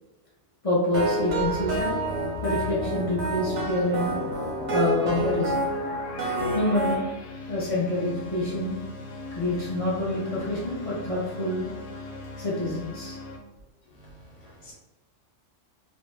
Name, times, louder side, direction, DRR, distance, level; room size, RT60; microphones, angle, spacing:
voice 1, 0.6-1.9 2.4-4.1 4.7-5.6 6.5-7.0 7.5-8.8 9.3-11.6 12.4-13.2, left 1 dB, 50° left, -7 dB, 0.4 m, -27 dB
sound 1, 0.9-6.9, right 2 dB, 50° right, 0.6 m, -28 dB
sound 2, 1.3-13.4, left 3 dB, 75° left, 0.9 m, -39 dB
voice 2, 13.9-14.7, equal, 30° left, -5 dB, 0.8 m, -50 dB
2.5 x 2.1 x 3.1 m, 1.1 s
omnidirectional pair, 1.3 m